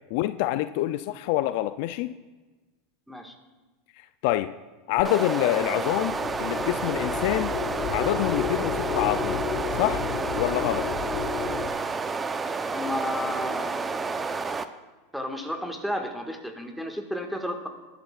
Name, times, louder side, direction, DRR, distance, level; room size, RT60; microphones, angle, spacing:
voice 1, 0.1-2.1 4.2-4.5 4.9-7.5 7.9-9.4 9.8-10.0 10.4-10.9, left 15 dB, 65° left, 12 dB, 0.4 m, -26 dB
sound 1, 5.0-14.6, right 4 dB, 20° right, 0.7 m, -30 dB
sound 2, 5.6-11.7, left 7 dB, 45° left, 1.2 m, -32 dB
voice 2, 12.7-13.8 15.1-17.7, left 1 dB, ahead, 4 dB, 1.7 m, -32 dB
22.0 x 12.0 x 2.4 m, 1.2 s
hypercardioid pair, 105°, 0 cm